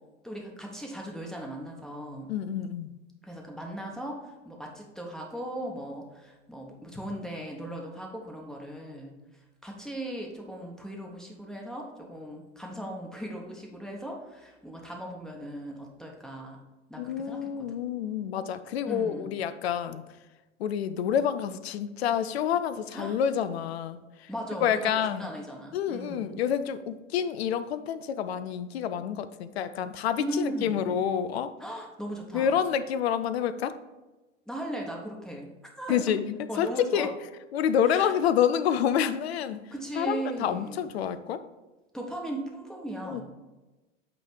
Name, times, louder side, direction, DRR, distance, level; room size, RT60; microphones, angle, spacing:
voice 1, 0.2-2.3 3.2-9.1 9.6-16.6 16.9-17.8 18.9-19.3 22.9-23.2 24.3-26.4 30.2-30.9 31.6-32.6 34.5-35.5 35.8-36.2 36.5-37.1 37.9-38.1 39.7-40.8 41.9-43.2, right 1 dB, ahead, 0 dB, 1.1 m, -38 dB
voice 2, 2.3-2.9 17.0-20.0 20.6-24.3 24.6-25.3 25.7-31.5 32.3-33.7 35.9-37.1 37.5-39.6 40.0-41.4 43.0-43.2, left 9 dB, 60° left, 12 dB, 0.5 m, -28 dB
8.3 x 3.2 x 5.2 m, 1.1 s
figure-of-eight pair, 80°, 36 cm